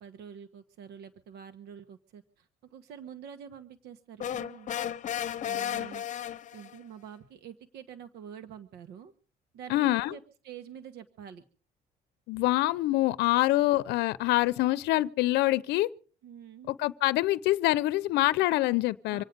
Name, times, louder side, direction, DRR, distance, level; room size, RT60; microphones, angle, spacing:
voice 1, 0.0-4.7 5.5-6.0 6.5-9.1 9.5-11.4 16.2-16.8 19.1-19.2, right 8 dB, 75° right, 1.4 m, -47 dB
sound 1, 4.2-6.8, left 10 dB, 45° left, 0.9 m, -34 dB
voice 2, 9.7-10.1 12.3-15.9 16.7-19.2, left 17 dB, 85° left, 0.6 m, -25 dB
26.0 x 9.2 x 5.2 m
cardioid pair, 110°, 17 cm